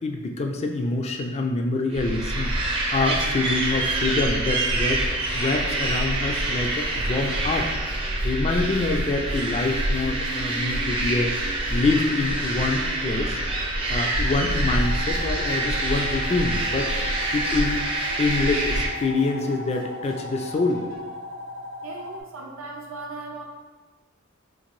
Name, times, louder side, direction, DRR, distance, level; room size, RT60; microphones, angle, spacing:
voice 1, 0.0-5.0 5.3-7.7 8.2-11.3 11.7-13.4 13.9-16.9 17.3-17.8 18.2-20.8, left 3 dB, 30° left, 3 dB, 0.3 m, -26 dB
sound 1, 1.9-18.9, right 1 dB, 25° right, 0.5 m, -26 dB
sound 2, 5.2-21.2, right 2 dB, 80° left, 1.2 m, -43 dB
sound 3, 14.7-22.2, left 2 dB, 60° left, 0.7 m, -37 dB
voice 2, 21.8-23.4, right 3 dB, 75° right, 1 dB, 0.6 m, -38 dB
3.8 x 2.5 x 3.0 m, 1.3 s
head